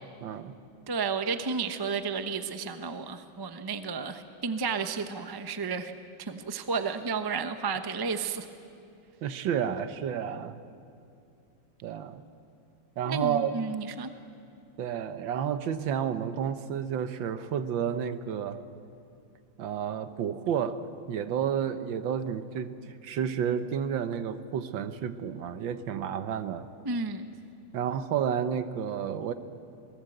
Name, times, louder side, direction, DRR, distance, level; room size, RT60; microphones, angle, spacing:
voice 1, 0.2-0.5 9.2-10.6 11.8-12.2 13.0-13.5 14.8-18.6 19.6-26.7 27.7-29.3, right 8 dB, 75° right, 11 dB, 1.6 m, -31 dB
voice 2, 0.9-5.9 6.2-8.5 13.0-14.1 26.8-27.3, right 5 dB, 35° right, 8 dB, 0.3 m, -32 dB
25.5 x 19.0 x 7.9 m, 2.5 s
omnidirectional pair, 2.1 m